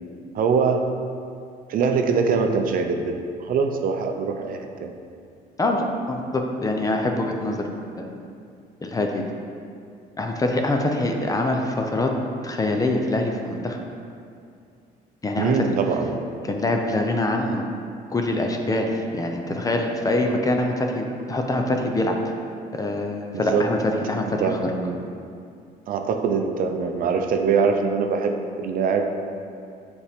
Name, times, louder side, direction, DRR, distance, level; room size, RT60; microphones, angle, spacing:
voice 1, 0.3-0.8 1.7-3.1 3.4-4.9 15.4-16.5 23.3-23.7 24.2-25.0 25.9-29.1, right 5 dB, 55° right, 5 dB, 0.6 m, -23 dB
voice 2, 5.6-7.7 8.0-8.1 8.8-9.2 10.2-12.1 12.4-13.8 15.2-15.5 16.5-17.6 18.1-22.2 22.8-23.8 24.1-24.7, left 2 dB, 20° left, 3 dB, 0.6 m, -24 dB
7.2 x 4.3 x 3.5 m, 2.4 s
cardioid pair, 110°, 17 cm